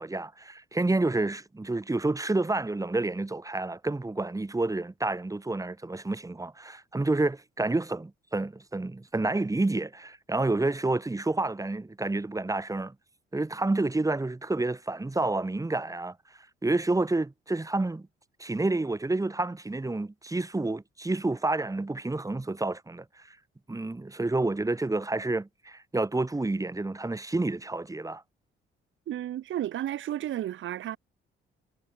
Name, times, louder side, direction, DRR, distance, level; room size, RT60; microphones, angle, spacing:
voice 1, 0.0-12.9 13.3-16.2 16.6-18.1 18.4-23.4 23.7-28.2, right 2 dB, 15° right, 5.6 m, -29 dB
voice 2, 29.1-31.0, right 12 dB, 75° right, 6.9 m, -32 dB
cardioid pair, 90°, 20 cm